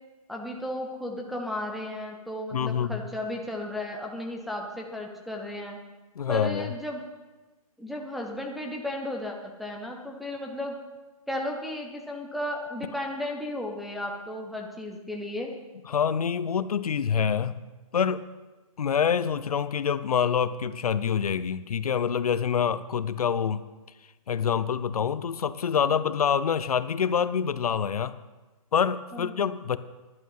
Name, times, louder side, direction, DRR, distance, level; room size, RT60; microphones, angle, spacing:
voice 1, 0.3-5.8 6.3-7.0 7.8-10.8 11.3-15.5 29.1-29.4, left 1 dB, ahead, -1 dB, 0.5 m, -34 dB
voice 2, 2.5-3.0 6.2-6.7 15.9-17.6 17.9-18.2 18.8-23.6 24.3-28.1 28.7-29.8, left 7 dB, 80° left, 15 dB, 0.7 m, -26 dB
11.0 x 9.3 x 7.5 m, 1.2 s
hypercardioid pair, 165°, 19 cm